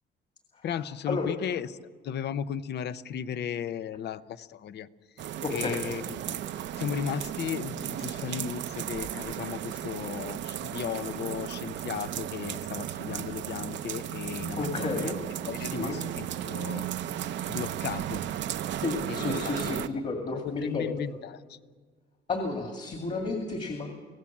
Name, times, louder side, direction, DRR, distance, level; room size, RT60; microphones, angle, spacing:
voice 1, 0.6-1.7 2.0-4.9 5.5-6.4 6.8-15.1 15.4-16.9 17.5-18.3 19.1-20.0 20.6-21.6, left 8 dB, 60° left, 14 dB, 0.8 m, -35 dB
sound 1, 5.2-19.9, right 11 dB, 70° right, 0.7 m, -35 dB
voice 2, 5.4-5.8 14.6-15.2 15.6-16.0 18.8-21.0 22.3-23.9, left 3 dB, 40° left, 3 dB, 2.4 m, -32 dB
25.0 x 17.5 x 7.4 m, 1.5 s
cardioid pair, 135°, 19 cm